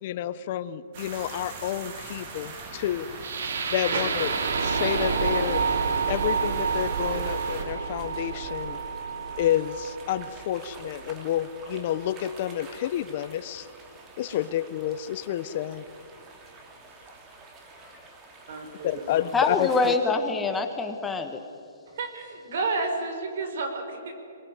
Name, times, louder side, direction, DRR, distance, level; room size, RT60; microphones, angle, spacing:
voice 1, 0.0-3.1 3.7-4.3 4.6-5.6 6.1-8.8 9.4-13.7 14.2-15.8 18.8-19.9, left 11 dB, 40° left, 14 dB, 0.9 m, -29 dB
sound 1, 0.9-7.6, right 4 dB, 40° right, 3.9 m, -40 dB
sound 2, 1.1-20.0, right 3 dB, 20° right, 2.7 m, -49 dB
sound 3, 3.2-11.2, right 5 dB, 75° right, 2.9 m, -29 dB
voice 2, 18.5-19.0 22.0-24.1, right 3 dB, 60° right, 6 dB, 5.6 m, -31 dB
voice 3, 19.3-21.4, left 3 dB, 10° left, 5 dB, 1.6 m, -25 dB
22.5 x 22.0 x 9.8 m, 2.5 s
hypercardioid pair, 160°, 0 cm